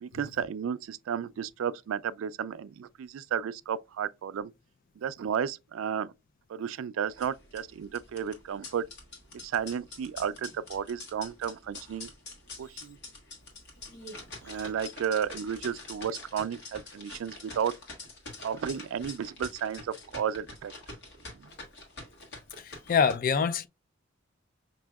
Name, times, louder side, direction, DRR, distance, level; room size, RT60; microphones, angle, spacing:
voice 1, 0.0-4.5 5.0-6.1 6.5-8.8 9.4-12.1 12.6-13.0 14.4-17.7 18.4-20.7, right 8 dB, 80° right, 0.3 m, -33 dB
sound 1, 7.1-23.1, left 3 dB, 60° left, 1.5 m, -46 dB
voice 2, 22.6-23.7, left 6 dB, 45° left, 0.4 m, -25 dB
6.0 x 2.7 x 2.3 m
head